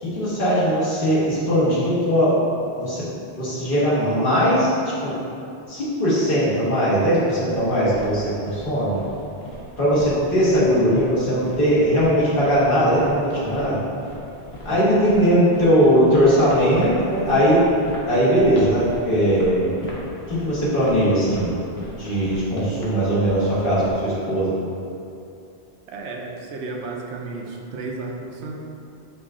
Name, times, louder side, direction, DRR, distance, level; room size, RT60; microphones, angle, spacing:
voice 1, 0.0-2.4 2.8-3.0 3.3-5.1 5.7-9.0 9.8-13.8 14.6-17.6 18.1-19.7 20.3-21.5 21.9-24.6, equal, 55° left, -10 dB, 1.5 m, -19 dB
sound 1, 7.5-23.9, left 1 dB, 70° left, 1.0 m, -39 dB
voice 2, 25.9-28.5, right 3 dB, 85° right, 0 dB, 0.9 m, -33 dB
5.8 x 2.4 x 3.6 m, 2.7 s
omnidirectional pair, 1.1 m